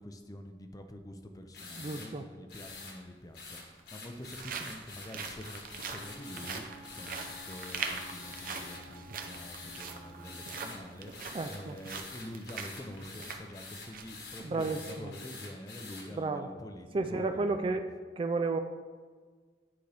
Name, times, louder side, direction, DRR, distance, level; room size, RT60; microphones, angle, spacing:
voice 1, 0.0-17.6, left 1 dB, 20° left, 6 dB, 0.5 m, -46 dB
sound 1, 1.5-2.1 2.5-3.0 3.3-8.8 9.2-9.9 10.2-10.8 11.1-16.0, left 4 dB, 60° left, 1.5 m, -47 dB
voice 2, 1.8-2.3 11.3-11.8 14.4-15.1 16.1-16.5 16.9-17.9 18.2-18.6, right 3 dB, 30° right, 7 dB, 0.3 m, -32 dB
sound 2, 2.6-2.7 3.6-14.2 14.6-14.7 15.2-15.4, right 5 dB, 50° right, 0.7 m, -43 dB
Wind instrument woodwind instrument, 5.9-10.7, equal, 80° right, 1.4 m, -53 dB
10.5 x 5.1 x 3.4 m, 1.5 s
head